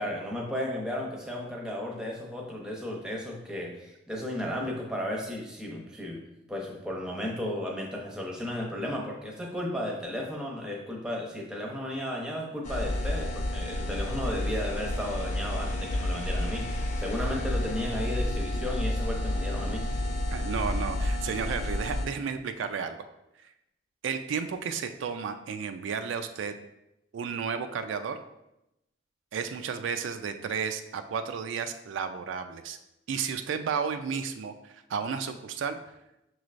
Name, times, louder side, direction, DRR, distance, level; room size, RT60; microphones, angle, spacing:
voice 1, 0.0-6.2 6.5-19.9, left 1 dB, 5° right, -2 dB, 0.6 m, -34 dB
sound 1, 12.6-22.1, left 1 dB, 35° left, 0.4 m, -30 dB
voice 2, 20.3-23.0 23.4-23.5 24.0-26.5 27.1-28.2 29.3-32.8 33.1-35.8, right 6 dB, 80° right, 8 dB, 0.3 m, -32 dB
6.0 x 3.1 x 2.5 m, 0.88 s
head